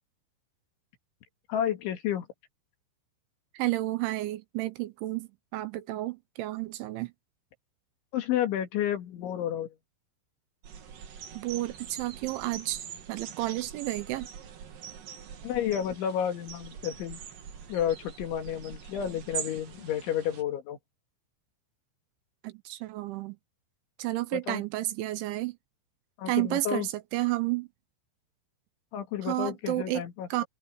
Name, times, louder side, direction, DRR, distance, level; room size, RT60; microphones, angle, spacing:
voice 1, 1.5-2.3 8.1-9.7 15.4-17.2 17.7-20.8 24.3-24.6 26.2-26.9 28.9-30.4, left 10 dB, 70° left, 4.4 m, -31 dB
voice 2, 3.5-7.1 11.4-14.3 22.4-23.4 24.0-25.6 26.3-27.7 29.2-30.0 30.3-30.4, right 17 dB, 75° right, 3.1 m, -31 dB
sound 1, 10.6-20.4, right 8 dB, 50° right, 3.3 m, -43 dB
omnidirectional pair, 5.8 m